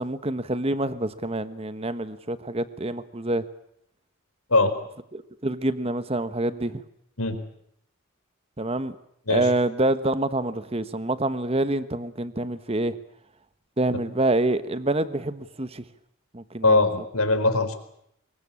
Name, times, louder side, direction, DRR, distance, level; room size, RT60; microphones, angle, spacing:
voice 1, 0.0-3.4 5.1-6.8 8.6-8.9 9.3-13.0 13.8-15.8 16.3-16.8, right 2 dB, 25° right, 13 dB, 1.2 m, -26 dB
voice 2, 16.6-17.7, left 2 dB, 80° left, 8 dB, 4.2 m, -21 dB
25.0 x 22.5 x 8.6 m, 0.73 s
head